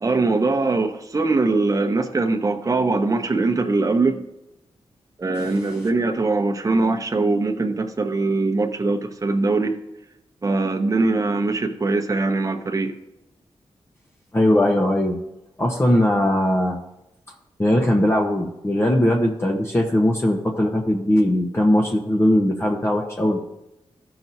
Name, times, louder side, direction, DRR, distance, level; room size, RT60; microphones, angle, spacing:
voice 1, 0.0-4.2 5.2-9.8 10.4-12.9, right 3 dB, 30° right, 3 dB, 0.8 m, -22 dB
voice 2, 14.3-15.2 15.6-16.8 17.6-23.4, left 1 dB, 25° left, 0 dB, 0.9 m, -19 dB
14.0 x 5.9 x 2.7 m, 0.91 s
cardioid pair, 70°, 10 cm